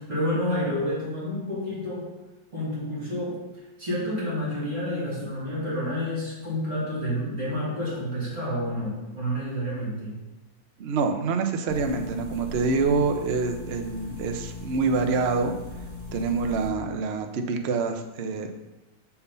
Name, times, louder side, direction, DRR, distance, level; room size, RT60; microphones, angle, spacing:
voice 1, 0.0-2.1 2.5-3.4 3.8-10.2, equal, 40° right, -7 dB, 3.0 m, -29 dB
voice 2, 10.8-15.5 16.1-18.5, right 4 dB, 75° right, 5 dB, 0.6 m, -26 dB
sound 1, 11.7-16.7, left 3 dB, 5° left, 2.3 m, -39 dB
6.8 x 4.6 x 5.4 m, 1.1 s
omnidirectional pair, 2.0 m